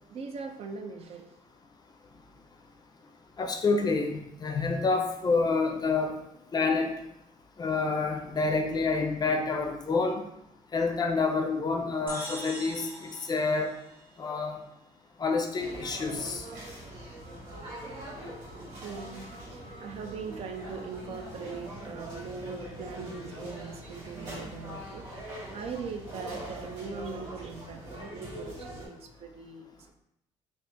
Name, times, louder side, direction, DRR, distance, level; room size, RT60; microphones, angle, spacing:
voice 1, 0.1-1.4 18.8-25.1 25.5-29.9, right 5 dB, 55° right, 5 dB, 0.4 m, -41 dB
voice 2, 3.4-6.2 6.5-6.9 7.6-10.2 10.7-13.7 14.2-14.6 15.2-16.4, left 4 dB, 35° left, 3 dB, 0.5 m, -28 dB
sound 1, 12.1-14.7, right 1 dB, 15° right, 1.0 m, -43 dB
sound 2, 15.6-28.9, right 1 dB, 90° right, 1.1 m, -42 dB
2.4 x 2.4 x 3.7 m, 0.82 s
cardioid pair, 90°, 13 cm